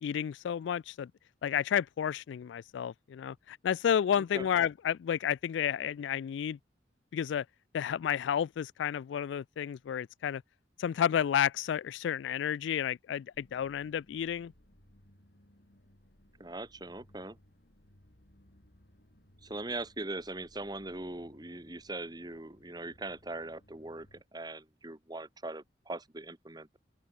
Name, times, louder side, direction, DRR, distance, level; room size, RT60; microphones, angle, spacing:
voice 1, 0.0-1.1 1.4-6.6 7.1-7.5 7.7-10.4 10.8-14.5, left 9 dB, 80° left, 0.3 m, -31 dB
voice 2, 4.2-4.5 16.4-17.4 19.4-26.8, right 2 dB, 20° right, 1.7 m, -41 dB
sound 1, 13.3-24.2, equal, 60° left, 3.8 m, -62 dB
open air
head